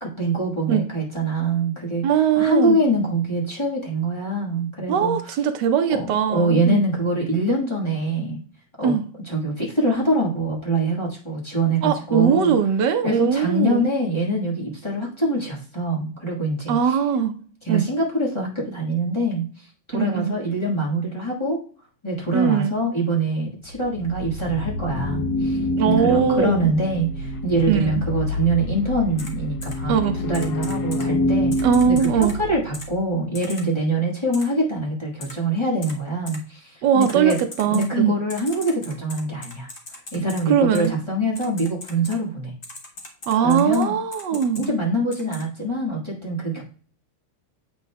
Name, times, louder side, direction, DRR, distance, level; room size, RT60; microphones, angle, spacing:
voice 1, 0.0-2.1 2.4-5.3 5.9-8.4 8.8-8.9 9.3-12.5 13.0-17.0 17.6-19.4 19.9-21.6 22.0-30.0 30.2-37.4 37.7-39.7 40.1-42.5 43.4-43.9 44.5-46.6, right 1 dB, 15° left, -4 dB, 1.1 m, -24 dB
voice 2, 2.0-2.8 4.9-6.8 8.8-9.0 11.8-13.9 16.7-17.3 17.7-17.9 19.9-20.4 22.3-22.7 25.8-26.7 27.7-28.0 29.9-30.2 31.6-32.3 36.8-38.2 40.5-40.9 43.3-44.7, right 7 dB, 70° right, 7 dB, 1.0 m, -20 dB
sound 1, 23.7-33.0, left 1 dB, 70° left, 0.9 m, -27 dB
Typing, 29.2-29.3 29.6-29.7 30.3-31.0 31.5-32.3 32.7-32.9 33.3-33.6 34.3-34.4 35.2-35.3 35.8-35.9 36.3-36.4 37.0-37.9 38.3-40.4 40.7-40.9 41.3-42.1 42.6-43.8 44.1-44.7 45.1-45.4, left 2 dB, 55° left, 0.6 m, -38 dB
8.2 x 5.5 x 2.2 m, 0.42 s
omnidirectional pair, 2.4 m